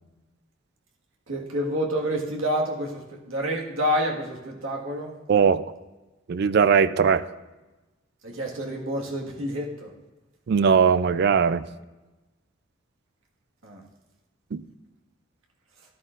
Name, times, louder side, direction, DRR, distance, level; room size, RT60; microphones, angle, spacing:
voice 1, 1.3-5.1 8.2-9.9 13.6-13.8, equal, 80° right, -1 dB, 1.7 m, -28 dB
voice 2, 5.3-5.6 6.3-7.2 10.5-11.6 14.5-14.6, right 6 dB, 55° right, 15 dB, 0.3 m, -19 dB
13.0 x 11.0 x 2.5 m, 1.1 s
head